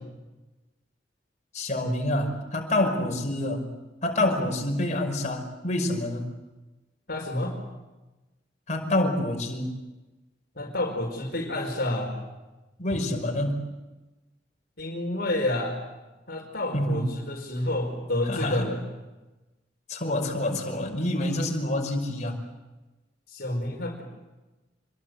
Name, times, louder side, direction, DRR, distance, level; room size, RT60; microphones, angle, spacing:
voice 1, 1.5-3.7 4.0-6.3 8.7-9.8 12.8-13.6 16.7-17.1 18.2-18.7 19.9-22.4, left 1 dB, 40° left, 2 dB, 5.6 m, -27 dB
voice 2, 7.1-7.6 10.5-12.1 14.8-15.8 16.3-18.8 23.3-24.0, left 1 dB, 55° left, 2 dB, 4.9 m, -29 dB
27.0 x 23.5 x 8.0 m, 1.1 s
head